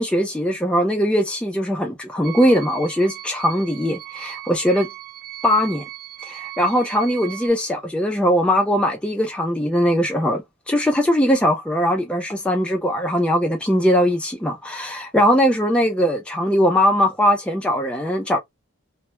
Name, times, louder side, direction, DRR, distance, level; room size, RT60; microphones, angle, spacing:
voice 1, 0.0-4.9 5.4-5.8 6.2-18.4, equal, 5° left, 0.3 m, -20 dB
sound 1, 2.2-7.5, right 15 dB, 45° right, 0.8 m, -37 dB
2.2 x 2.0 x 2.9 m
head